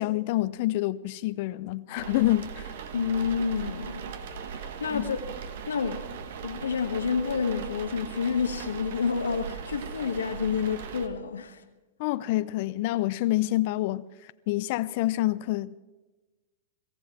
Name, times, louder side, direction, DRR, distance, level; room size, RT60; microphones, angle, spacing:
voice 1, 0.0-2.7 4.9-5.2 12.0-14.1 14.5-15.8, left 16 dB, 55° left, 0.6 m, -27 dB
sound 1, 2.0-11.1, right 7 dB, 65° right, 1.4 m, -39 dB
voice 2, 2.9-4.1 4.6-5.2 5.7-6.0 6.4-11.6, left 6 dB, 85° left, 1.3 m, -29 dB
18.5 x 16.0 x 4.4 m
hypercardioid pair, 110°, 0 cm